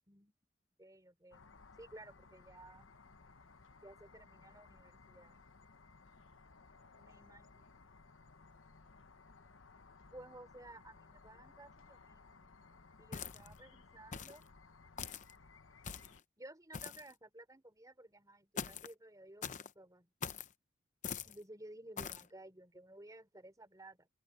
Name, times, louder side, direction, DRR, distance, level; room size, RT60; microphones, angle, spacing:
voice 1, 0.8-1.5 1.8-2.9 3.8-5.4 7.0-7.6 10.1-12.5 13.0-14.5 16.4-20.1 21.2-24.1, right 1 dB, 20° right, 3.9 m, -55 dB
sound 1, 1.3-16.2, left 4 dB, 85° left, 1.1 m, -60 dB
Footsteps Boots Gritty Ground Woods Barks Mono, 13.1-13.6 14.1-14.4 15.0-15.3 15.8-16.2 16.7-17.1 18.6-18.9 19.4-19.7 20.2-20.5 21.0-21.4 22.0-22.3, left 6 dB, 40° left, 0.8 m, -43 dB
open air
head